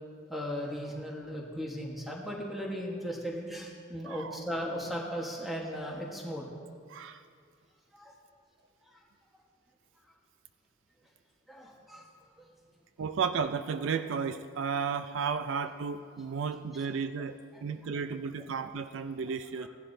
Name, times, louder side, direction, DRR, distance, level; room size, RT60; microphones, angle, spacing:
voice 1, 0.3-6.5 7.9-8.1 8.9-9.0 11.5-12.1 17.5-17.6, equal, ahead, -2 dB, 1.3 m, -37 dB
voice 2, 4.1-4.4 6.9-7.2 13.0-19.7, right 6 dB, 70° right, 10 dB, 0.4 m, -33 dB
16.0 x 11.0 x 2.7 m, 2.1 s
head